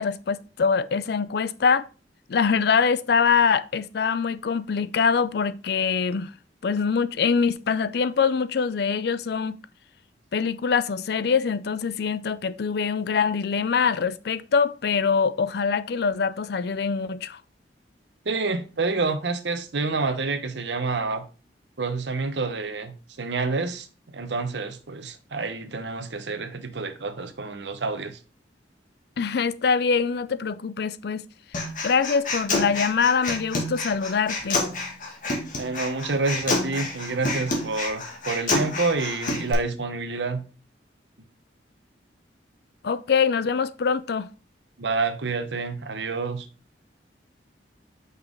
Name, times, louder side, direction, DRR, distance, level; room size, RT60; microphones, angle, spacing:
voice 1, 0.0-1.9 2.3-6.3 6.6-9.6 10.3-17.4 29.2-31.3 31.6-34.6 42.8-44.3, left 5 dB, 60° left, 0.4 m, -24 dB
voice 2, 18.2-21.2 21.8-23.9 24.1-28.2 35.6-40.4 44.8-46.5, right 3 dB, 75° right, 0.9 m, -28 dB
Human voice, 31.5-39.5, left 2 dB, 45° left, 2.0 m, -28 dB
6.0 x 5.5 x 3.7 m
head